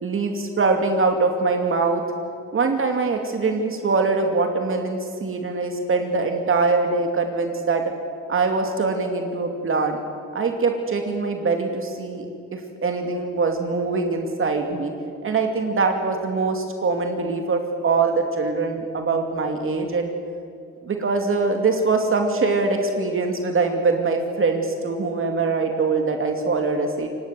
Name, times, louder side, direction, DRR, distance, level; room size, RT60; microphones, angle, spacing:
voice 1, 0.0-2.0 2.5-7.9 8.3-10.0 10.3-12.3 12.5-14.9 15.2-20.1 20.8-27.1, right 4 dB, 45° right, 4 dB, 2.6 m, -23 dB
28.5 x 18.0 x 7.7 m, 2.5 s
cardioid pair, 90°, 30 cm